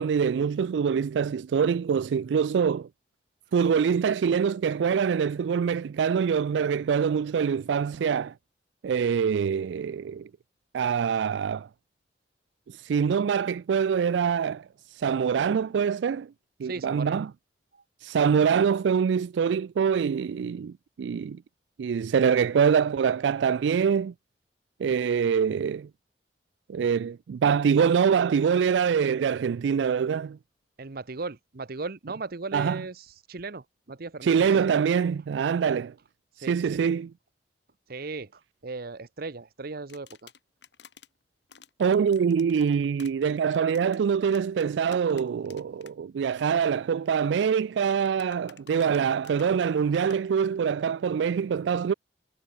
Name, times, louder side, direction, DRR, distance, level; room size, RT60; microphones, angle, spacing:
voice 1, 0.0-2.9 3.5-8.3 8.8-10.3 10.7-11.7 12.7-16.3 16.6-17.3 18.0-21.4 21.8-24.1 24.8-25.9 26.7-30.4 32.5-32.8 34.2-35.9 36.5-37.1 41.8-51.9, right 7 dB, 80° right, 0.3 m, -24 dB
voice 2, 16.6-17.2 17.7-17.8 30.8-34.5 36.4-36.8 37.9-40.3, right 3 dB, 55° right, 0.9 m, -37 dB
sound 1, 39.9-41.1 41.5-45.9 46.2-46.4 47.8-50.2, left 7 dB, 75° left, 3.7 m, -52 dB
head